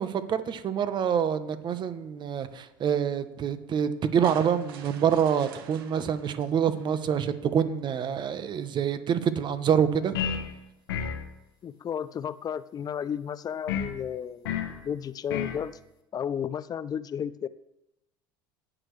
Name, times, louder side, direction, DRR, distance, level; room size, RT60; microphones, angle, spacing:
voice 1, 0.0-10.2, right 8 dB, 40° right, 12 dB, 1.0 m, -26 dB
sound 1, 4.2-7.5, right 8 dB, 75° right, 1.0 m, -47 dB
sound 2, 10.1-10.5 10.9-11.3 13.7-14.0 14.4-14.8 15.3-15.6, left 8 dB, 80° left, 1.2 m, -30 dB
voice 2, 11.6-15.8 16.1-17.5, left 8 dB, 30° left, 16 dB, 0.5 m, -33 dB
18.0 x 6.3 x 3.3 m, 0.88 s
hypercardioid pair, 80°, 12 cm